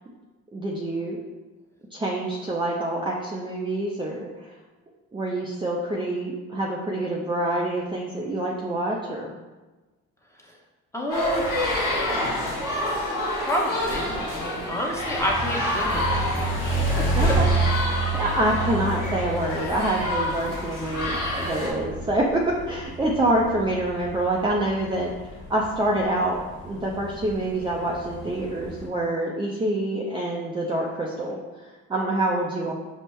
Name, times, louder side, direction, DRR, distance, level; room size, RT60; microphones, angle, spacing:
voice 1, 0.5-1.2 1.9-4.5 5.1-9.3 17.1-17.5 17.8-25.1 25.5-32.7, right 1 dB, 15° right, -3 dB, 0.5 m, -26 dB
voice 2, 10.9-11.5 13.4-16.6 17.2-17.3, equal, 5° left, -2 dB, 0.9 m, -29 dB
sound 1, 11.1-21.7, left 1 dB, 60° left, 1.4 m, -28 dB
sound 2, 15.2-28.9, right 3 dB, 35° left, 1.3 m, -30 dB
5.2 x 2.1 x 3.1 m, 1.2 s
hypercardioid pair, 60°, 36 cm